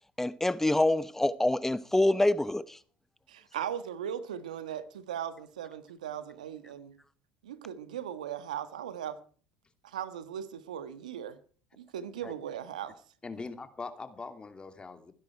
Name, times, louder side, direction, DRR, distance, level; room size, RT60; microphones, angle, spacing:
voice 1, 0.2-2.8, left 1 dB, 10° left, 1.0 m, -26 dB
voice 2, 3.3-7.0 7.4-9.2 9.8-11.4 11.7-13.0, right 9 dB, 90° right, 1.5 m, -38 dB
voice 3, 13.2-15.1, left 4 dB, 25° left, 2.6 m, -42 dB
24.0 x 10.5 x 4.6 m
hypercardioid pair, 70°, 4 cm